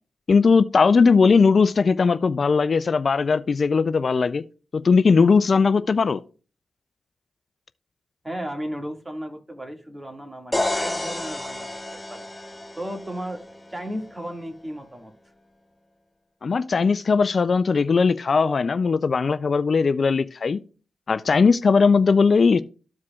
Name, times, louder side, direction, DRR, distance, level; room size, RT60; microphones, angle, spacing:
voice 1, 0.3-4.4 4.7-6.2 16.4-20.6 21.1-22.6, left 5 dB, 60° left, 0.4 m, -19 dB
voice 2, 8.2-11.7 12.1-12.3 12.8-13.4 13.7-15.1, equal, 15° right, 2.0 m, -34 dB
sound 1, 10.5-14.4, left 1 dB, 10° left, 1.4 m, -31 dB
14.0 x 4.8 x 2.4 m
supercardioid pair, 45°, 0 cm